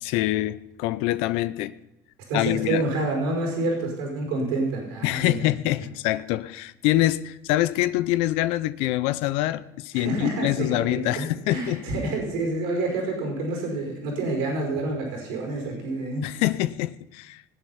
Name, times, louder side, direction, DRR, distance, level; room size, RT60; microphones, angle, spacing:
voice 1, 0.0-1.7 2.3-2.8 5.0-11.9 16.2-17.4, left 16 dB, 75° left, 0.7 m, -25 dB
voice 2, 2.3-5.4 9.9-16.4, right 2 dB, 80° right, 5.4 m, -28 dB
19.5 x 8.5 x 5.7 m
supercardioid pair, 100°, 10 cm